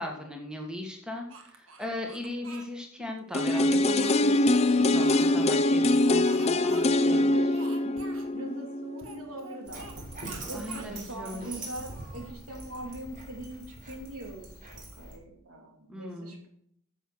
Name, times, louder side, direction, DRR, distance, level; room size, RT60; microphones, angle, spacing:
voice 1, 0.0-7.4 10.5-11.4 15.9-16.4, left 1 dB, 5° right, 1 dB, 1.7 m, -38 dB
Speech, 1.3-2.7 3.3-4.6 5.0-5.6 6.2-6.9 7.1-7.2 7.5-8.3 9.0-10.0 10.2-10.9 11.4-12.8, right 3 dB, 65° right, 1.6 m, -47 dB
sound 1, 3.3-9.2 9.6-9.7, left 2 dB, 30° left, 0.4 m, -24 dB
voice 2, 6.7-7.9 8.3-10.0 10.5-14.5 14.7-16.5, right 1 dB, 85° right, 1 dB, 2.9 m, -42 dB
Dog, 9.7-15.2, right 2 dB, 40° right, 3.2 m, -43 dB
10.0 x 7.2 x 6.3 m, 0.68 s
head